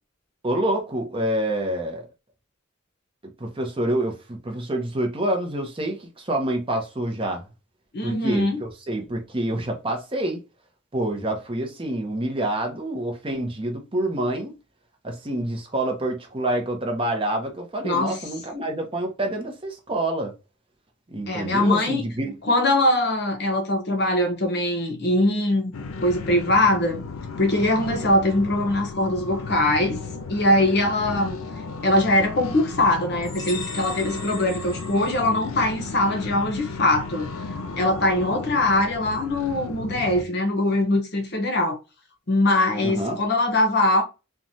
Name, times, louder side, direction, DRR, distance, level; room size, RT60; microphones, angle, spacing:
voice 1, 0.4-2.1 3.4-7.4 8.0-10.4 10.9-14.5 15.0-20.3 21.1-22.3 42.8-43.2, right 1 dB, 25° right, 0.7 m, -27 dB
voice 2, 7.9-8.6 17.8-18.2 21.3-22.0 22.4-25.7 26.0-27.0 27.4-30.0 30.3-31.4 31.8-37.3 37.8-41.8 42.3-44.0, left 1 dB, 50° left, 0.8 m, -22 dB
sound 1, 25.7-40.2, left 3 dB, 90° left, 0.5 m, -34 dB
sound 2, 33.2-35.8, left 3 dB, 20° left, 0.8 m, -38 dB
3.1 x 2.2 x 2.7 m
head